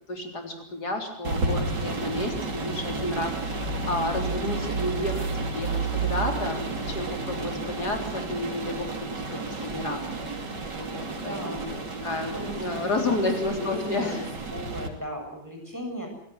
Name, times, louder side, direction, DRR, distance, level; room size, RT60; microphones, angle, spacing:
voice 1, 0.1-5.3 5.5-10.1 10.8-14.2, left 2 dB, 70° left, 3 dB, 4.3 m, -31 dB
sound 1, 1.2-14.9, right 3 dB, 80° right, 3.7 m, -31 dB
voice 2, 11.1-11.6 12.3-12.8 13.1-14.2 14.5-16.1, equal, 10° right, 2 dB, 7.6 m, -36 dB
27.5 x 17.0 x 7.9 m, 0.68 s
omnidirectional pair, 1.8 m